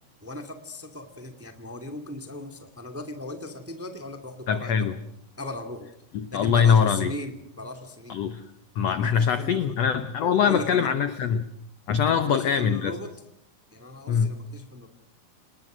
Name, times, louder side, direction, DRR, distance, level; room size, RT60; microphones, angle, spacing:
voice 1, 0.2-4.9 5.4-5.9 6.3-8.2 8.8-9.9 10.3-10.9 12.0-13.1 13.7-14.9, left 1 dB, 5° right, 6 dB, 1.3 m, -38 dB
voice 2, 4.5-4.9 6.1-7.1 8.1-8.4 8.7-11.5 11.9-12.9 14.1-14.3, left 7 dB, 80° left, 11 dB, 1.5 m, -23 dB
29.0 x 20.0 x 6.3 m, 0.73 s
omnidirectional pair, 4.4 m